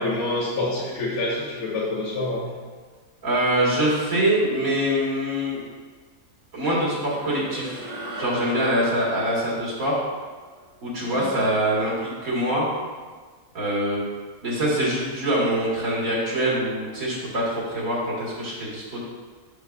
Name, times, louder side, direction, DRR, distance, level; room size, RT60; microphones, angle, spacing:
voice 1, 0.0-2.5 11.1-11.3, left 2 dB, 75° left, -8 dB, 1.6 m, -27 dB
voice 2, 3.2-5.6 6.5-7.9 8.2-10.1 10.8-12.8 13.5-14.0 14.4-19.0, right 1 dB, 70° right, -6 dB, 2.2 m, -24 dB
sound 1, 6.6-11.3, equal, 30° right, 0.9 m, -40 dB
6.7 x 6.5 x 2.5 m, 1.4 s
omnidirectional pair, 1.5 m